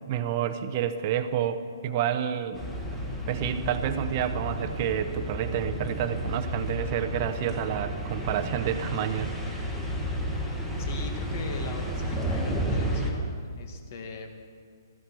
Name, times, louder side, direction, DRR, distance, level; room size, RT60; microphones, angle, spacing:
voice 1, 0.0-2.6 3.3-9.6, right 9 dB, 35° right, 10 dB, 0.8 m, -29 dB
sound 1, 2.5-13.1, equal, 5° left, 1.7 m, -32 dB
voice 2, 10.8-14.4, left 4 dB, 45° left, 5 dB, 2.0 m, -41 dB
15.0 x 14.5 x 6.2 m, 2.1 s
hypercardioid pair, 160°, 2 cm